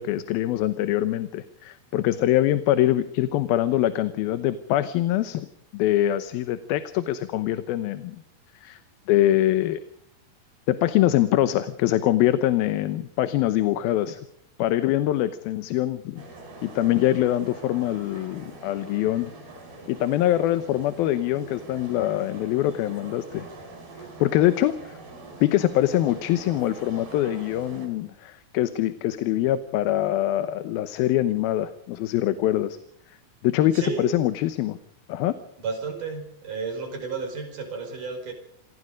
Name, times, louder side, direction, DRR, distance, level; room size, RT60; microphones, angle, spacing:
voice 1, 0.0-5.5 5.7-8.2 8.6-8.8 9.1-9.8 10.7-14.2 14.6-16.3 16.6-19.3 19.9-23.5 24.0-25.0 25.4-32.8 33.4-34.8 35.1-35.3, left 13 dB, 80° left, 11 dB, 2.7 m, -24 dB
sound 1, 16.2-27.9, right 3 dB, 80° right, 7.6 m, -43 dB
voice 2, 33.7-34.2 35.6-38.3, right 5 dB, 55° right, 5 dB, 6.5 m, -32 dB
26.5 x 19.5 x 5.2 m, 0.72 s
omnidirectional pair, 4.3 m